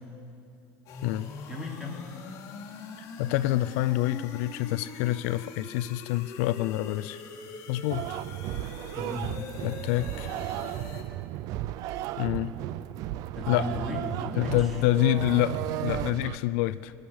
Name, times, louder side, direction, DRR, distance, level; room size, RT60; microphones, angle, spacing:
sound 1, 0.9-11.0, left 5 dB, 50° left, 1.7 m, -43 dB
voice 1, 1.5-2.0 8.9-9.3 13.3-14.8, left 2 dB, 5° right, -3 dB, 3.1 m, -36 dB
voice 2, 3.2-7.2 7.7-8.1 9.6-10.3 12.2-12.5 13.5-13.7 14.3-16.9, left 15 dB, 80° left, 14 dB, 0.4 m, -27 dB
sound 2, 7.9-16.4, right 14 dB, 60° right, 0.4 m, -34 dB
19.0 x 6.5 x 9.8 m, 2.6 s
cardioid pair, 130°, 7 cm